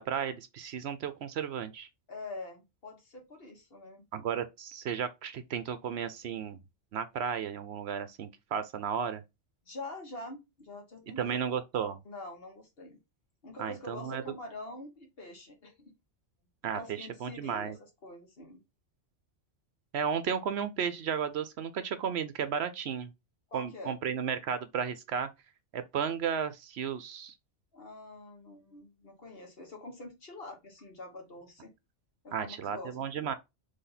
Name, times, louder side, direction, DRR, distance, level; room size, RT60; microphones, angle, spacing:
voice 1, 0.0-1.9 4.1-6.6 6.9-9.2 11.2-12.0 13.6-14.2 16.6-17.8 19.9-23.1 23.5-25.3 25.7-27.3 32.3-33.3, right 7 dB, 65° right, 0.8 m, -34 dB
voice 2, 2.1-4.1 9.7-11.5 12.0-13.0 13.4-15.9 16.7-18.6 23.5-24.0 27.7-31.7 32.2-33.0, left 2 dB, 55° left, 1.5 m, -45 dB
4.1 x 3.2 x 3.9 m
omnidirectional pair, 1.2 m